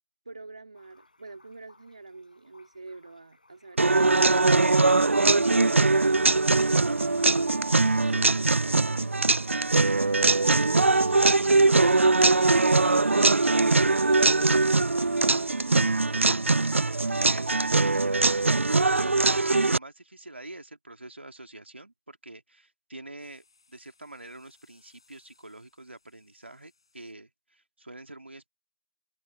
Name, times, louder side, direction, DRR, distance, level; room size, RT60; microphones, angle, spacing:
voice 1, 0.3-6.3 7.3-9.5 15.4-16.3, right 3 dB, 35° right, 2.4 m, -45 dB
sound 1, 0.7-12.7, left 2 dB, 40° left, 7.3 m, -62 dB
sound 2, 3.8-19.8, right 3 dB, 90° right, 0.3 m, -21 dB
voice 2, 7.0-7.5 17.1-18.6 18.9-28.5, right 2 dB, 70° right, 2.4 m, -45 dB
sound 3, 23.2-27.1, left 4 dB, 25° left, 7.6 m, -66 dB
figure-of-eight pair, 175°, 7 cm